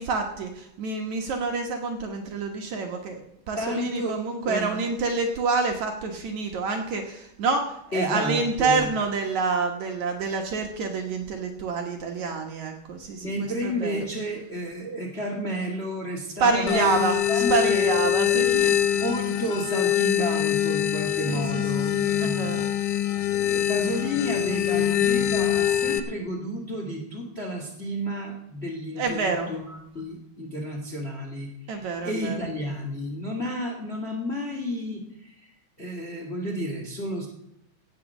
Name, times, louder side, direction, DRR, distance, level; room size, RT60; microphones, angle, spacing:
voice 1, 0.0-14.0 16.4-17.2 17.5-18.9 21.3-22.9 29.0-29.5 31.7-32.4, right 4 dB, 65° right, 3 dB, 2.2 m, -27 dB
voice 2, 3.6-4.9 7.9-8.9 13.2-17.0 17.3-17.9 19.0-22.8 23.3-35.5 35.8-37.3, equal, 25° left, 1 dB, 1.6 m, -31 dB
sound 1, 16.7-26.0, left 11 dB, 70° left, 2.1 m, -24 dB
17.0 x 6.3 x 7.0 m, 0.80 s
omnidirectional pair, 4.2 m